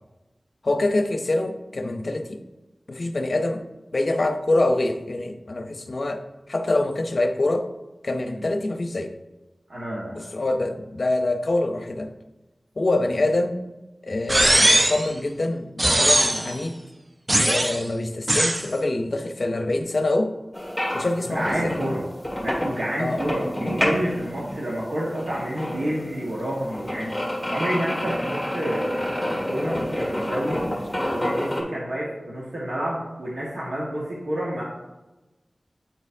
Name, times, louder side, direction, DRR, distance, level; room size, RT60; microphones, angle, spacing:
voice 1, 0.6-2.4 2.9-3.6 3.9-6.2 6.5-7.7 8.0-9.1 10.1-12.1 12.8-13.6 14.0-16.8 17.4-20.3 20.9-21.7 23.0-23.2, left 2 dB, 65° left, 7 dB, 0.6 m, -25 dB
voice 2, 9.7-10.2 21.3-22.1 22.4-27.1 27.5-30.7 31.1-34.6, equal, 80° right, -6 dB, 1.3 m, -29 dB
sound 1, 14.3-15.1 15.8-16.5 17.3-17.8 18.3-18.7, right 1 dB, 30° right, 0.4 m, -19 dB
sound 2, 20.5-31.6, left 1 dB, 10° left, 1.5 m, -29 dB
8.7 x 4.3 x 2.6 m, 1.1 s
cardioid pair, 45°, 0 cm